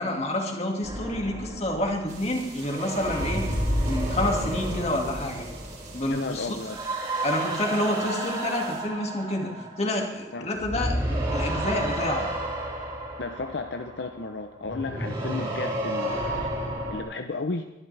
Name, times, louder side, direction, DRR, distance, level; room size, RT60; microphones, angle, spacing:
voice 1, 0.0-3.5 3.9-5.5 5.9-6.6 7.2-12.3, left 1 dB, 35° left, 1 dB, 2.1 m, -28 dB
sound 1, 0.8-10.2 10.5-17.0, right 1 dB, 30° right, 4.5 m, -31 dB
sound 2, 2.1-8.8, right 4 dB, 45° right, 4.8 m, -46 dB
voice 2, 6.1-6.8 10.3-10.5 13.2-17.6, left 3 dB, 65° left, 6 dB, 0.7 m, -34 dB
22.0 x 11.5 x 3.4 m, 1.0 s
head